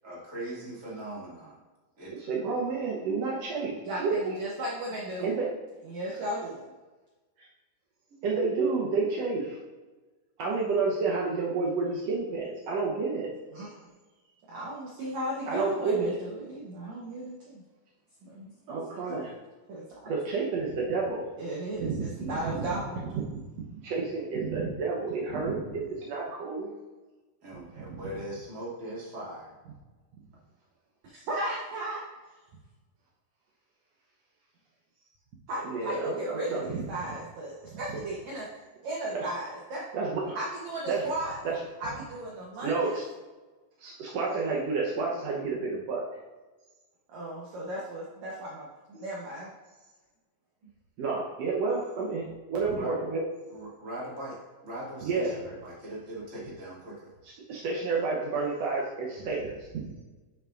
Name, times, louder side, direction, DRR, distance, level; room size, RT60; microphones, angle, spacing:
voice 1, 0.0-1.6 2.0-2.1 8.1-8.2 27.4-29.5 52.8-53.0 53.5-54.4 54.6-57.1, right 1 dB, 25° right, -7 dB, 2.1 m, -40 dB
voice 2, 2.2-4.3 5.2-5.5 8.2-9.6 10.4-13.3 15.5-16.1 18.7-19.3 20.0-21.3 21.8-22.7 23.1-26.7 27.8-28.0 35.6-36.8 39.1-39.3 39.9-40.4 40.9-41.1 41.4-41.5 42.6-43.0 43.8-46.0 51.0-53.2 55.0-55.4 57.2-59.9, right 4 dB, 80° right, -3 dB, 1.4 m, -30 dB
voice 3, 3.9-5.3 5.9-6.6 13.5-13.9 14.5-17.6 18.2-18.5 19.7-20.1 21.4-23.0 31.1-32.0 35.5-38.5 38.8-39.8 40.4-41.4 41.8-43.0 47.1-49.5, right 1 dB, 65° right, -5 dB, 1.8 m, -35 dB
10.5 x 5.8 x 2.5 m, 1.2 s
omnidirectional pair, 4.4 m